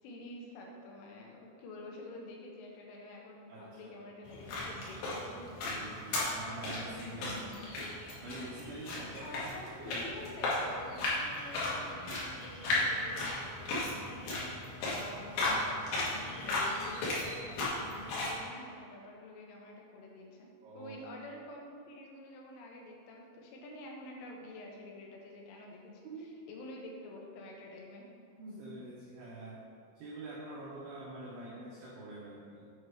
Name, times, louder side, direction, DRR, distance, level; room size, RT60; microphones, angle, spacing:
voice 1, 0.0-5.6 7.2-7.7 9.2-15.7 16.0-20.5 20.8-25.9 26.5-28.1, left 2 dB, 80° left, -1 dB, 3.5 m, -48 dB
voice 2, 3.5-4.0 5.4-7.4 7.7-8.0 8.2-10.3 20.6-21.0 26.0-26.4 28.3-29.7 30.0-32.7, right 2 dB, 90° right, -4 dB, 2.2 m, -46 dB
sound 1, 4.2-18.4, left 2 dB, 65° left, 3.3 m, -36 dB
8.2 x 4.7 x 4.8 m, 2.4 s
omnidirectional pair, 5.7 m